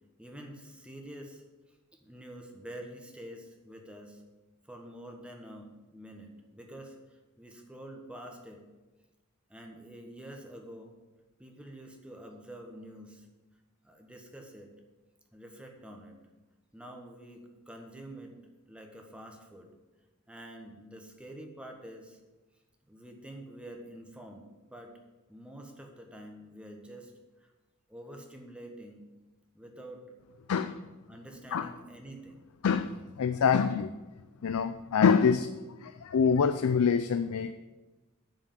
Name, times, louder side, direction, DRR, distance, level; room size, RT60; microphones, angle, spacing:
voice 1, 0.2-1.4 2.0-4.2 4.6-8.6 9.5-11.0 11.4-13.3 13.8-14.7 15.3-16.2 16.7-19.7 20.3-22.2 22.9-25.0 25.3-27.1 27.4-27.5 27.9-29.1 29.5-30.2 31.1-32.4, right 1 dB, 5° right, 2 dB, 1.2 m, -47 dB
voice 2, 32.6-33.9 34.4-35.5 35.8-37.5, left 6 dB, 90° left, 10 dB, 0.4 m, -25 dB
9.1 x 4.9 x 7.6 m, 1.1 s
head